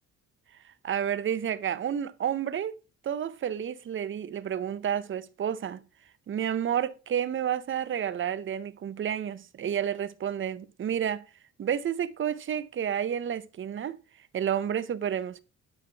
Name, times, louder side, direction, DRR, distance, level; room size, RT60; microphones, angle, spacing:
voice 1, 0.8-5.8 6.3-11.2 11.6-14.0 14.3-15.4, right 9 dB, 40° right, 0.6 m, -30 dB
8.9 x 5.0 x 3.3 m
cardioid pair, 90°, 30 cm